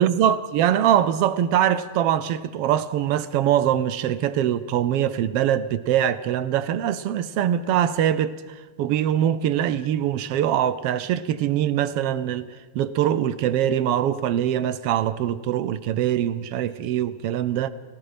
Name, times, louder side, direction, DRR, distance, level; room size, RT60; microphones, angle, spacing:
voice 1, 0.0-8.4 8.8-12.5 12.7-17.7, right 10 dB, 70° right, 1.5 m, -23 dB
30.0 x 18.5 x 5.1 m
omnidirectional pair, 3.4 m